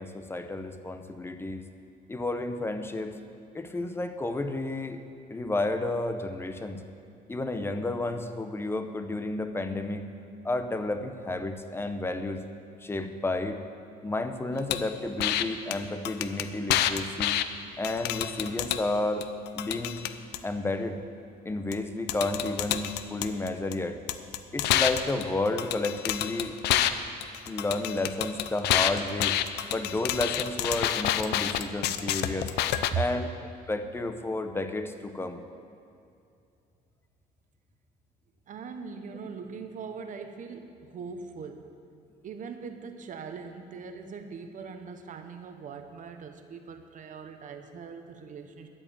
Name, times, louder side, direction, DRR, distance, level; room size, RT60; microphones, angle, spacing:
voice 1, 0.0-1.7 2.1-3.2 3.5-5.0 5.3-6.8 7.3-10.0 10.4-12.4 12.8-13.6 14.0-17.4 17.8-19.3 19.5-20.0 20.4-21.0 21.4-24.0 24.5-26.6 27.5-29.4 29.7-32.5 32.9-33.3 33.7-35.4, left 2 dB, 15° left, 8 dB, 0.7 m, -31 dB
sound 1, 14.7-14.8 15.2-15.4 15.7-15.8 16.0-17.4 17.8-18.8 19.2-20.4 21.7-21.8 22.1-23.7 24.1-26.9 27.2-32.9, left 12 dB, 80° left, 0.5 m, -28 dB
voice 2, 38.5-41.7 42.2-48.7, right 6 dB, 50° right, 7 dB, 0.9 m, -40 dB
12.5 x 5.0 x 8.9 m, 2.5 s
cardioid pair, 110°, 17 cm